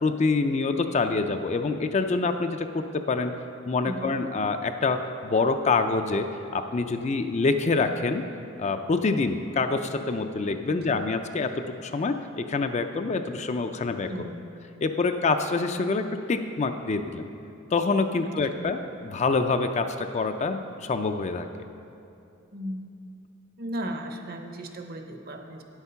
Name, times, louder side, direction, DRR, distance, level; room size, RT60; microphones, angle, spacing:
voice 1, 0.0-3.3 3.7-8.2 8.6-14.1 14.8-17.3 17.7-21.5, left 3 dB, 35° left, 7 dB, 0.4 m, -26 dB
voice 2, 3.8-4.1 10.7-11.0 14.0-14.5 18.2-18.7 22.5-22.9 23.6-25.6, right 1 dB, 45° right, 5 dB, 0.8 m, -36 dB
9.2 x 8.1 x 5.6 m, 2.7 s
head